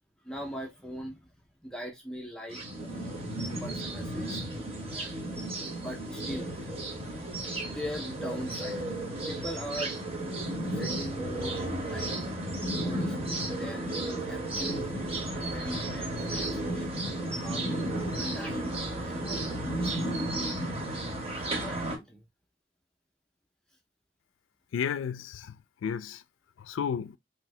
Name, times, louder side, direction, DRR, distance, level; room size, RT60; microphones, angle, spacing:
voice 1, 0.2-1.3 1.6-3.2 3.6-4.4 4.9-6.7 7.6-8.9 9.3-10.0 10.7-11.6 11.9-12.2 12.8-16.9 17.4-17.7 18.1-20.4 21.4-22.3, equal, 5° left, 0.5 m, -41 dB
sound 1, 2.5-22.0, right 1 dB, 30° right, 0.8 m, -33 dB
voice 2, 24.7-26.2 26.6-27.2, left 7 dB, 90° left, 0.3 m, -33 dB
2.7 x 2.7 x 3.1 m
head